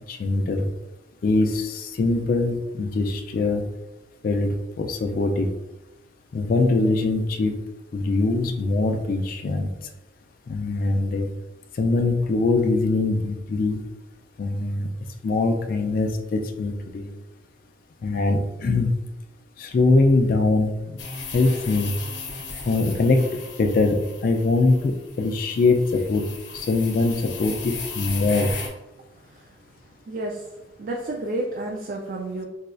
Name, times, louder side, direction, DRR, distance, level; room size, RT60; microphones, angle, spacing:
voice 1, 0.1-0.7 1.2-3.7 4.2-5.5 6.3-7.5 7.9-9.7 10.5-11.3 11.7-13.8 14.4-14.9 15.2-17.2 18.0-18.9 19.6-21.0 21.3-21.9 22.7-26.2 26.5-28.5, left 3 dB, 50° left, 4 dB, 0.3 m, -22 dB
sound 1, 21.0-28.7, left 4 dB, 85° left, 0.7 m, -36 dB
voice 2, 30.1-30.5 30.8-32.5, right 2 dB, 50° right, 0 dB, 0.3 m, -30 dB
4.1 x 2.2 x 2.4 m, 1.0 s
head